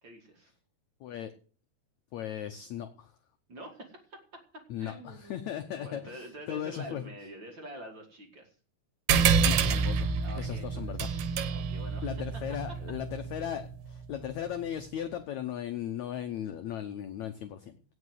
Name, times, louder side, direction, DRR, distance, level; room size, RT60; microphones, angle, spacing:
voice 1, 0.0-0.5 3.5-4.2 4.8-8.5 10.2-11.0 11.5-12.1, equal, 35° right, 3 dB, 2.4 m, -46 dB
voice 2, 1.0-1.3 2.1-3.2 4.7-7.1 9.4-11.1 12.0-17.8, left 10 dB, 80° left, 7 dB, 1.6 m, -37 dB
sound 1, 9.1-14.0, right 6 dB, 75° right, 2.9 m, -28 dB
17.5 x 6.0 x 8.1 m, 0.41 s
omnidirectional pair, 4.5 m